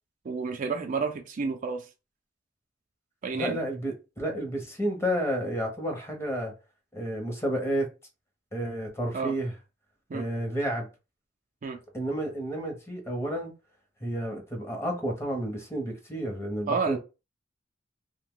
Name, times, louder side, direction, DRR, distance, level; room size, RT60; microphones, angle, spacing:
voice 1, 0.2-1.9 3.2-3.6 9.1-9.3 10.1-10.3 11.6-11.8 16.7-17.0, right 5 dB, 45° right, 0.4 m, -30 dB
voice 2, 3.3-6.5 6.9-7.9 8.5-9.5 10.1-10.9 11.9-13.5 14.0-17.0, equal, 15° left, 0.8 m, -31 dB
2.7 x 2.2 x 3.6 m
head